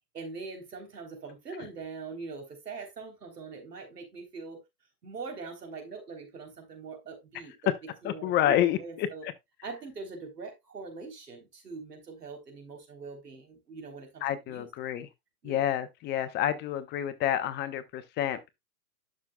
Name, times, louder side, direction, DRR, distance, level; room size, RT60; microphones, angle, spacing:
voice 1, 0.1-4.6 5.0-9.3 9.6-14.7 15.4-15.7, right 4 dB, 90° right, 3.6 m, -42 dB
voice 2, 8.0-9.3 14.2-15.1 15.4-18.5, left 11 dB, 25° left, 0.6 m, -29 dB
11.5 x 6.1 x 2.2 m
hypercardioid pair, 120°, 46 cm